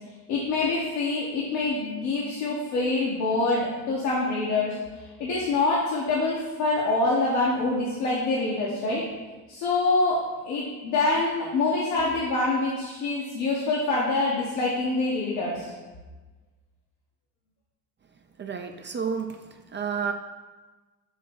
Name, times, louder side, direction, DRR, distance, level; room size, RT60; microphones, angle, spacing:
voice 1, 0.3-4.8 5.2-9.0 9.5-10.2 10.4-15.7, left 3 dB, 75° left, -5 dB, 1.4 m, -25 dB
voice 2, 18.4-19.4 19.7-20.1, right 6 dB, 25° right, 5 dB, 0.5 m, -30 dB
7.3 x 3.0 x 5.9 m, 1.3 s
hypercardioid pair, 60°, 49 cm